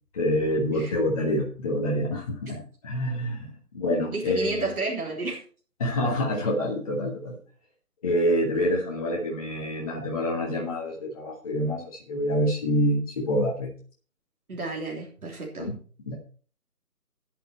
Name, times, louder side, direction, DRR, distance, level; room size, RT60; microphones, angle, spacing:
voice 1, 0.1-4.7 5.8-7.4 8.0-13.7 15.6-15.7 16.1-16.2, equal, 25° left, -2 dB, 1.6 m, -27 dB
voice 2, 4.1-5.4 14.5-15.7, right 3 dB, 70° right, -2 dB, 3.4 m, -31 dB
10.0 x 9.2 x 4.4 m, 0.41 s
figure-of-eight pair, 160°, 45 cm